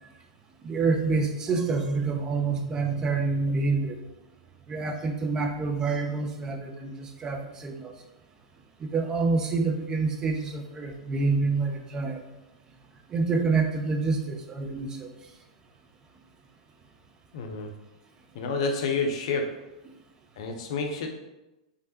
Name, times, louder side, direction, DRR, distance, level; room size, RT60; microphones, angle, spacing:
voice 1, 0.6-4.0 4.7-7.9 8.8-12.2 13.1-15.1, right 4 dB, 20° right, 4 dB, 0.4 m, -27 dB
voice 2, 17.3-17.7 18.3-19.5 20.4-21.1, left 4 dB, 55° left, 4 dB, 0.5 m, -29 dB
3.2 x 2.5 x 2.7 m, 1.0 s
figure-of-eight pair, 100°, 3 cm